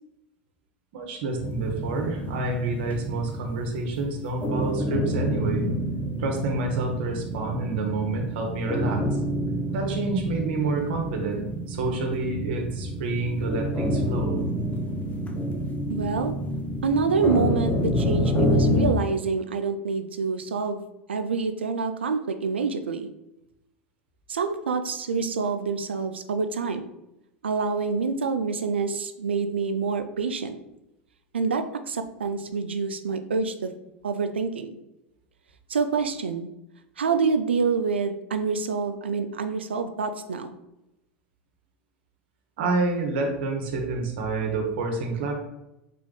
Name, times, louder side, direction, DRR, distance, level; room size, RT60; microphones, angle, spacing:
voice 1, 0.9-5.7 6.2-9.0 9.7-14.4 42.6-45.3, right 3 dB, 70° right, 2 dB, 1.0 m, -28 dB
sound 1, 1.4-18.9, equal, 25° left, 0.7 m, -28 dB
voice 2, 15.9-16.3 16.8-20.8 21.1-23.1 24.3-26.9 27.4-30.6 31.3-33.7 34.0-34.8 35.7-36.5 37.0-40.5, right 5 dB, 90° right, 9 dB, 0.4 m, -27 dB
3.7 x 3.4 x 3.8 m, 0.90 s
hypercardioid pair, 90°, 6 cm